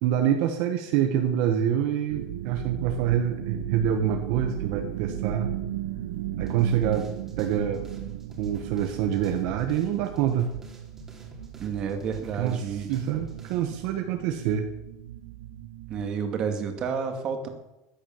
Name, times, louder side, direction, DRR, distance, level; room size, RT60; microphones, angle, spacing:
voice 1, 0.0-5.5 6.4-7.1 7.4-7.9 8.4-10.5 12.4-14.7, right 9 dB, 50° right, 4 dB, 1.4 m, -26 dB
sound 1, 2.1-16.1, right 12 dB, 85° right, 1.0 m, -36 dB
sound 2, 6.5-13.8, right 2 dB, 10° right, 3.0 m, -47 dB
voice 2, 11.6-12.9 15.9-17.5, right 6 dB, 30° right, 5 dB, 2.3 m, -30 dB
15.0 x 10.0 x 7.3 m, 0.94 s
cardioid pair, 170°, 3 cm